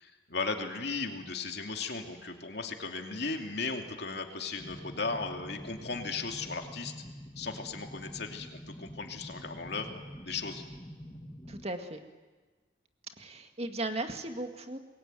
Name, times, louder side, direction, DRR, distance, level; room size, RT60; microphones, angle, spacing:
voice 1, 0.0-6.9 7.4-10.6, left 4 dB, 60° left, 3 dB, 2.8 m, -36 dB
sound 1, 4.6-11.6, equal, 20° left, 1.9 m, -46 dB
voice 2, 11.5-12.0 13.2-14.8, right 2 dB, 35° right, 6 dB, 2.0 m, -36 dB
26.5 x 22.0 x 9.2 m, 1.3 s
head